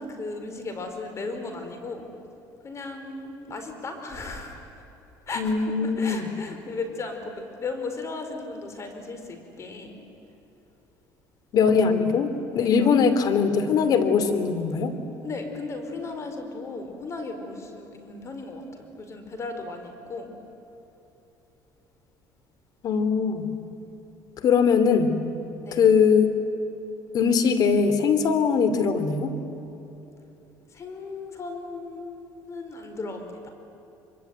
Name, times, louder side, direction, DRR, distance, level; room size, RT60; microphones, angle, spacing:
voice 1, 0.0-2.1 2.6-4.7 5.3-10.0 12.5-12.9 15.2-20.3 25.6-25.9 30.7-33.5, left 3 dB, 40° left, 6 dB, 4.6 m, -36 dB
voice 2, 5.4-6.2 11.5-14.9 22.8-23.5 24.4-25.2 25.7-26.3 27.1-29.3, left 6 dB, 55° left, 10 dB, 2.8 m, -21 dB
24.0 x 24.0 x 9.5 m, 3.0 s
supercardioid pair, 100°, 8 cm